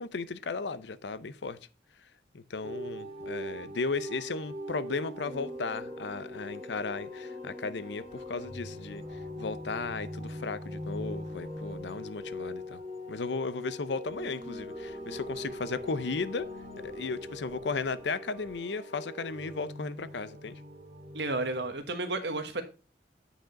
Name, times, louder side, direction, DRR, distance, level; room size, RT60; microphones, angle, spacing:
voice 1, 0.0-1.6 2.3-9.0 9.4-12.8 13.1-16.5 16.8-20.6, left 4 dB, 85° left, 0.6 m, -35 dB
sound 1, 2.6-21.7, left 1 dB, 35° right, 2.1 m, -41 dB
voice 2, 21.1-22.6, right 2 dB, 80° right, 1.3 m, -32 dB
9.0 x 5.0 x 5.1 m
head